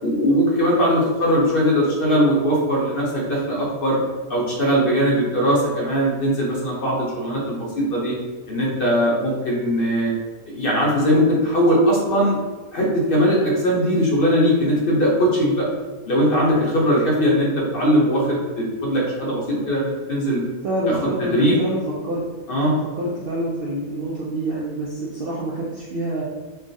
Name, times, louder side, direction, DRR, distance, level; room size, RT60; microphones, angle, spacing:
voice 1, 0.0-4.0 4.3-8.2 8.5-10.1 10.5-12.4 12.7-15.7 16.1-20.4 20.9-21.6 22.5-22.7, equal, 50° left, -4 dB, 0.7 m, -20 dB
voice 2, 20.6-22.3 22.6-26.2, right 1 dB, 75° right, -5 dB, 0.5 m, -27 dB
3.2 x 2.3 x 2.6 m, 1.3 s
omnidirectional pair, 1.5 m